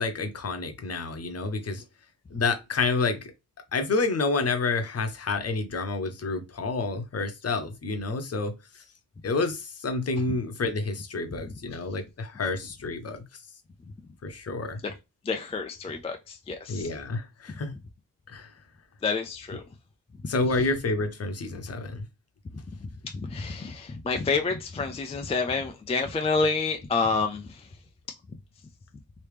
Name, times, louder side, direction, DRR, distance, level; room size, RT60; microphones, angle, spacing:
voice 1, 0.0-1.8 2.3-3.3 3.7-8.5 9.2-13.2 14.2-14.8 16.7-17.8 18.3-18.5 20.3-22.0, left 3 dB, 40° left, 0.8 m, -29 dB
voice 2, 11.3-11.8 14.8-14.9 15.2-16.9 17.5-17.6 19.0-19.6 22.5-27.8, left 4 dB, 15° left, 0.3 m, -29 dB
3.2 x 2.8 x 3.3 m
cardioid pair, 105°, 37 cm